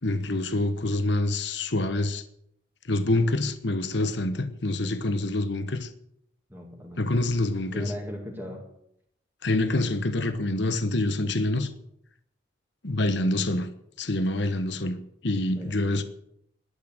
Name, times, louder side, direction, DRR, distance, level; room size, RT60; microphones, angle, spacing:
voice 1, 0.0-2.2 2.8-5.9 7.0-7.9 9.4-11.7 12.8-13.7 14.0-16.0, left 2 dB, 60° left, 1.1 m, -26 dB
voice 2, 6.5-7.1 7.7-8.7 15.5-16.0, equal, 10° right, 2.2 m, -38 dB
12.0 x 8.6 x 9.0 m
head